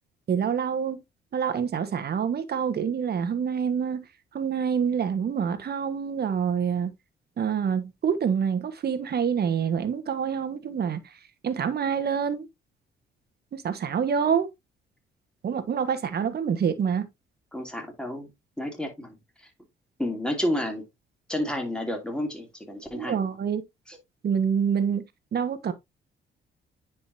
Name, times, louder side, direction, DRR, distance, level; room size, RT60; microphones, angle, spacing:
voice 1, 0.3-1.0 1.3-4.0 4.3-6.9 7.4-11.0 11.4-12.4 13.5-14.5 15.4-17.1 22.9-23.6 24.2-25.0 25.3-25.7, right 7 dB, 55° right, 1.4 m, -26 dB
voice 2, 17.5-18.3 18.6-19.2 20.0-20.9 21.3-23.2 23.9-24.0, left 1 dB, 5° left, 2.8 m, -30 dB
9.7 x 5.1 x 2.7 m
cardioid pair, 90°, 20 cm